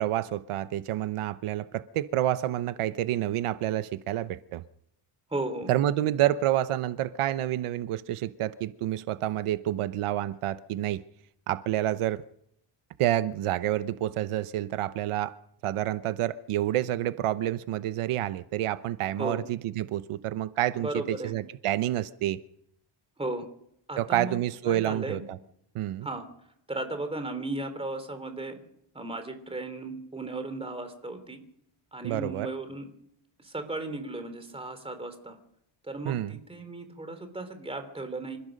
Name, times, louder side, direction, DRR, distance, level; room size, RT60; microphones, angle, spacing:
voice 1, 0.0-4.6 5.7-11.0 11.5-12.2 13.0-15.3 15.6-22.4 24.0-25.4 25.7-26.1 32.0-32.5 36.0-36.4, right 13 dB, 85° right, 13 dB, 0.9 m, -28 dB
voice 2, 5.3-5.7 19.2-19.4 20.8-21.3 23.2-23.5 23.9-24.4 24.6-25.2 26.0-26.3 26.7-28.6 28.9-31.4 31.9-32.9 33.4-35.4 35.8-38.4, right 2 dB, 10° right, 8 dB, 3.1 m, -35 dB
27.0 x 15.0 x 6.5 m, 0.74 s
wide cardioid pair, 175°, 49 cm